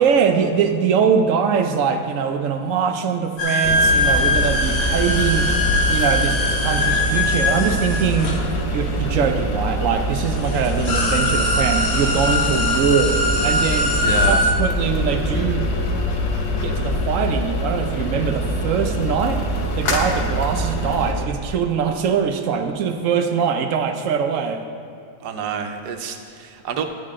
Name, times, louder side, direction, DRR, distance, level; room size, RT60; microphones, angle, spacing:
voice 1, 0.0-5.5 5.9-8.3 8.7-15.7 16.6-24.6, right 6 dB, 65° right, 7 dB, 0.9 m, -22 dB
sound 1, 3.4-9.1 9.9-10.0 10.3-14.5, left 1 dB, 45° left, 1.5 m, -22 dB
sound 2, 3.6-21.1, equal, 80° left, 1.6 m, -24 dB
voice 2, 14.0-14.4 25.2-26.9, right 7 dB, 85° right, 6 dB, 1.3 m, -28 dB
11.5 x 8.5 x 3.6 m, 2.6 s
omnidirectional pair, 1.7 m